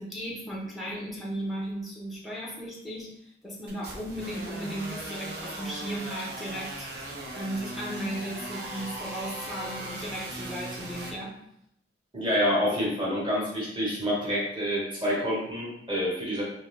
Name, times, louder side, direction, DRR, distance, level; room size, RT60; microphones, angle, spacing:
voice 1, 0.0-6.9 7.3-11.4, equal, ahead, -4 dB, 0.6 m, -36 dB
sound 1, 3.7-11.1, right 2 dB, 55° right, 0.8 m, -38 dB
voice 2, 12.1-16.4, equal, 25° right, -6 dB, 1.3 m, -27 dB
3.7 x 2.9 x 3.2 m, 0.75 s
head